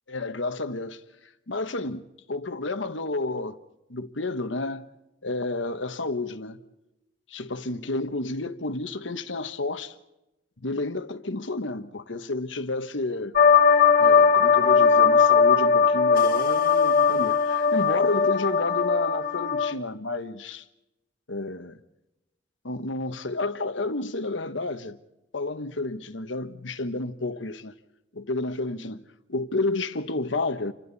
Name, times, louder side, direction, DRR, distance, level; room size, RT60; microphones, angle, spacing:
voice 1, 0.1-1.0 1.5-3.6 3.9-4.8 5.2-6.6 7.3-9.9 10.6-13.4 14.0-20.6 21.3-21.8 22.6-25.0 25.3-27.7 28.1-29.0 29.3-30.7, left 2 dB, 85° left, 1.3 m, -31 dB
sound 1, 13.4-19.7, left 6 dB, 50° left, 1.7 m, -19 dB
29.5 x 25.0 x 4.2 m
head